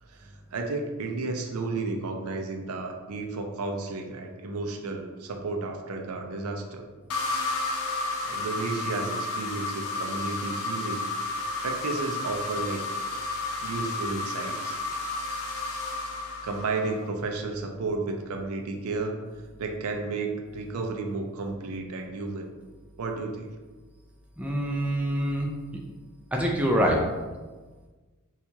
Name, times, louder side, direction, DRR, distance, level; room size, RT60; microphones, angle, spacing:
voice 1, 0.0-6.9 8.2-11.1 11.6-12.9 13.6-14.8 16.0-16.2 16.4-19.2 19.6-22.5 23.0-23.5, right 3 dB, 70° right, 4 dB, 0.4 m, -32 dB
sound 1, 7.1-17.1, left 2 dB, 70° left, 0.5 m, -32 dB
voice 2, 24.4-25.5 26.3-27.0, equal, 5° right, -1 dB, 0.3 m, -25 dB
4.4 x 2.3 x 2.7 m, 1.3 s
head